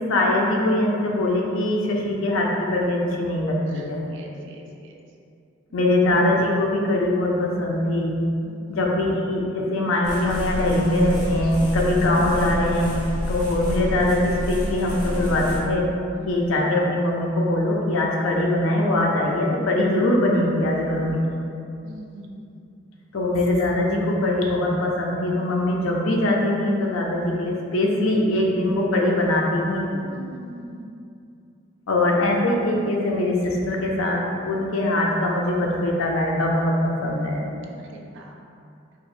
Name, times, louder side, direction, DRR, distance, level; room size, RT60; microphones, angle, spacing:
voice 1, 0.0-4.0 5.7-8.2 8.7-13.0 13.3-15.9 16.3-21.2 23.1-30.0 31.9-37.4, left 1 dB, 80° left, -1 dB, 0.5 m, -22 dB
voice 2, 3.7-5.0 5.7-5.9 8.4-8.9 16.1-16.4 19.4-19.7 21.8-22.7 30.1-31.0 37.6-38.4, right 2 dB, 65° right, 1 dB, 0.4 m, -44 dB
sound 1, 10.0-15.6, equal, 40° left, 1.0 m, -29 dB
4.5 x 2.0 x 2.5 m, 2.5 s
head